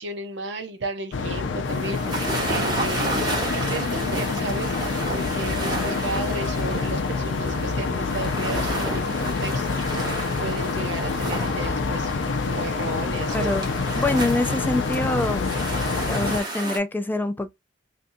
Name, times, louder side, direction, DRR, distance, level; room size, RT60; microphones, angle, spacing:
voice 1, 0.0-3.2 3.6-4.8 5.1-10.1 10.4-12.1 12.4-13.5, right 2 dB, 65° right, 0.8 m, -33 dB
sound 1, 1.1-16.4, left 4 dB, 75° left, 0.5 m, -27 dB
sound 2, 1.7-16.8, right 2 dB, 20° right, 1.2 m, -32 dB
voice 2, 13.3-13.7 13.9-15.5 16.1-17.5, left 2 dB, 10° left, 0.4 m, -25 dB
3.4 x 2.6 x 2.6 m
head